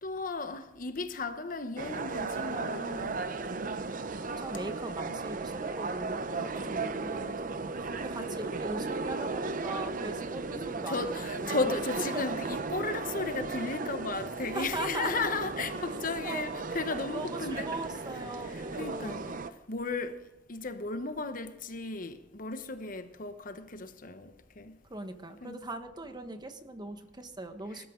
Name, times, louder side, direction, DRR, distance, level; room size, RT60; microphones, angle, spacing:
voice 1, 0.0-3.2 5.1-5.2 6.4-7.3 10.9-17.7 18.3-19.4 19.7-20.2 20.5-24.8 25.4-25.6 27.7-27.9, left 3 dB, 50° left, 1.1 m, -35 dB
sound 1, 1.8-19.5, right 3 dB, 50° right, 0.7 m, -36 dB
voice 2, 4.4-11.7 12.1-12.2 14.5-15.3 16.2-16.5 17.1-19.2 24.9-27.9, right 2 dB, 25° right, 1.3 m, -40 dB
20.0 x 13.0 x 3.8 m
head